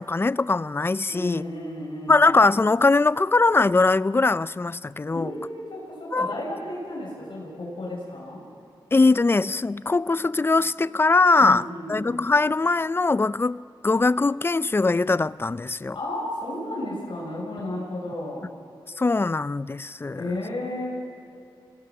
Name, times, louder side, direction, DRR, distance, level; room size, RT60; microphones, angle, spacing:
voice 1, 0.0-1.4 2.1-5.3 6.1-6.3 8.9-16.0 19.0-20.2, left 3 dB, 25° left, 0.4 m, -21 dB
voice 2, 1.1-2.4 5.1-8.4 11.4-12.1 15.9-18.5 20.1-20.9, left 1 dB, 70° left, 6.0 m, -33 dB
27.0 x 18.5 x 7.0 m
wide cardioid pair, 85°, 9 cm